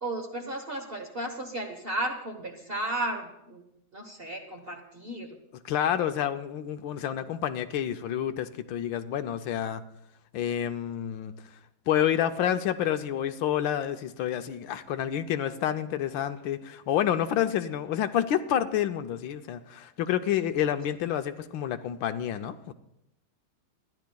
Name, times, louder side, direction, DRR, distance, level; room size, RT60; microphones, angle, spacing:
voice 1, 0.0-3.6 3.9-5.4, right 1 dB, 40° right, 4 dB, 0.9 m, -34 dB
voice 2, 5.6-9.8 10.3-11.3 11.9-22.7, left 10 dB, 75° left, 9 dB, 1.3 m, -29 dB
26.0 x 11.0 x 2.3 m, 0.82 s
omnidirectional pair, 2.3 m